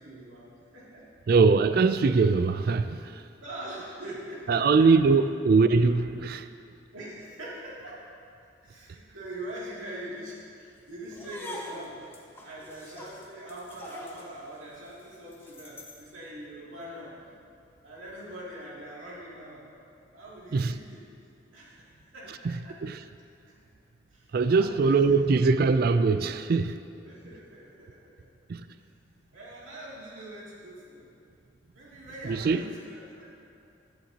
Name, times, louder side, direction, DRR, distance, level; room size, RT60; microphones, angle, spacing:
voice 1, 0.0-1.1 3.4-4.9 6.9-8.1 8.6-12.2 12.4-17.3 17.8-19.7 20.1-21.1 21.5-22.8 23.5-23.6 24.1-24.9 27.0-28.3 28.8-28.9 29.3-31.1 31.7-33.3, right 1 dB, 85° right, -7 dB, 2.6 m, -43 dB
voice 2, 1.3-3.2 4.5-6.5 20.5-20.7 22.4-22.5 22.8-23.0 24.3-26.8 28.5-28.7 32.2-32.6, right 4 dB, 50° right, 11 dB, 0.3 m, -22 dB
sound 1, 11.1-16.1, left 1 dB, 10° left, 0.9 m, -45 dB
17.0 x 11.5 x 2.9 m, 2.5 s
head